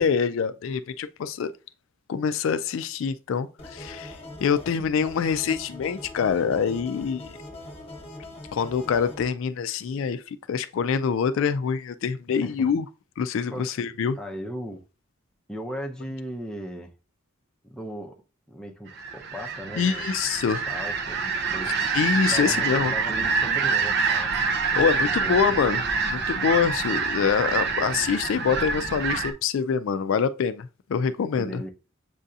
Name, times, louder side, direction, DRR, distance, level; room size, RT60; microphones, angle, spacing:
voice 1, 0.0-1.5 2.1-7.3 8.5-12.9 13.2-14.2 19.8-20.7 21.9-22.9 24.7-25.8 26.1-31.6, left 6 dB, 60° left, 0.3 m, -25 dB
sound 1, 3.6-9.2, left 1 dB, 25° left, 1.0 m, -42 dB
voice 2, 12.3-12.7 13.5-13.8 14.2-14.8 15.5-16.9 17.6-18.2 18.5-20.1 20.7-22.0 22.3-24.3 25.2-25.6 31.3-31.7, equal, 5° left, 0.5 m, -37 dB
sound 2, 18.9-29.3, right 5 dB, 50° right, 0.6 m, -26 dB
7.4 x 2.7 x 2.4 m
head